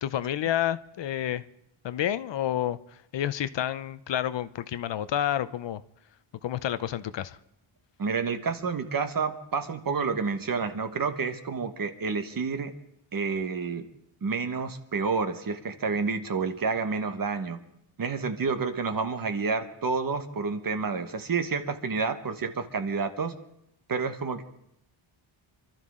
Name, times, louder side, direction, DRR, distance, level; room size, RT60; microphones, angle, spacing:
voice 1, 0.0-1.4 1.8-2.8 3.1-5.8 6.4-7.4, left 11 dB, 60° left, 0.6 m, -29 dB
voice 2, 8.0-12.7 13.1-13.9 14.2-17.6 18.0-23.3 23.9-24.4, right 5 dB, 45° right, 1.4 m, -29 dB
27.0 x 13.0 x 3.7 m
wide cardioid pair, 160°, 48 cm